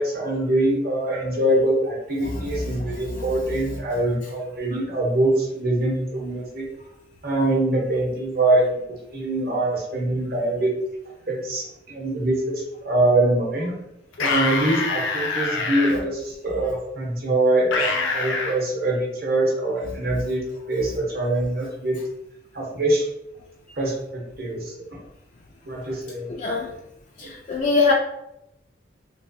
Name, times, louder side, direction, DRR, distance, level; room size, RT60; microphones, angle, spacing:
voice 1, 0.0-6.7 7.2-10.7 11.3-13.8 14.2-20.4 20.7-22.0 22.5-23.1 23.8-24.7 25.7-26.3 27.2-27.3, right 1 dB, 50° right, -2 dB, 0.9 m, -23 dB
sound 1, 14.1-15.9 17.7-18.6, left 3 dB, 90° left, 0.6 m, -25 dB
voice 2, 26.3-26.7 27.2-27.9, left 4 dB, 40° left, -2 dB, 0.3 m, -22 dB
3.1 x 2.9 x 2.7 m, 0.87 s
head